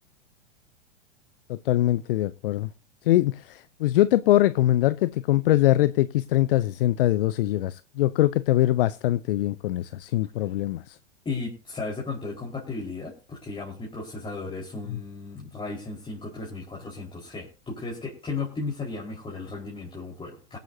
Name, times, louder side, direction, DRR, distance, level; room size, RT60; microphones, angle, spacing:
voice 1, 1.5-2.7 3.0-11.0 14.9-15.0, left 14 dB, 50° left, 0.7 m, -23 dB
voice 2, 11.2-20.6, left 3 dB, 15° left, 4.6 m, -35 dB
23.5 x 9.3 x 2.8 m
figure-of-eight pair, 100°, 36 cm